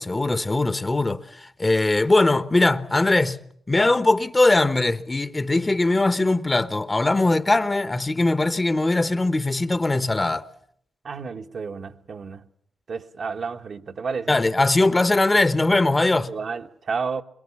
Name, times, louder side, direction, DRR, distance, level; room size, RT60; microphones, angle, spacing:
voice 1, 0.0-3.4 3.7-10.5 14.3-16.3, left 2 dB, 25° left, 1.2 m, -21 dB
voice 2, 11.0-12.4 12.9-14.3 16.3-17.2, right 5 dB, 60° right, 1.4 m, -31 dB
23.5 x 22.5 x 7.1 m
hypercardioid pair, 40°, 0 cm